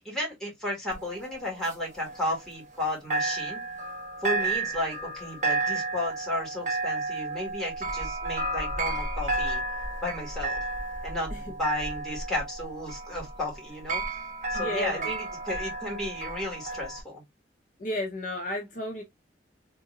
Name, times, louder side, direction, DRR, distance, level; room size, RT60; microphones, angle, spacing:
voice 1, 0.0-3.6 4.2-9.6 10.0-10.6 11.0-14.0 14.5-17.2, left 1 dB, 5° left, 2.4 m, -33 dB
sound 1, 0.9-2.8 3.1-17.0, right 2 dB, 45° right, 1.3 m, -32 dB
voice 2, 14.5-15.1 17.8-19.0, left 1 dB, 45° left, 0.9 m, -33 dB
3.8 x 3.5 x 2.5 m
head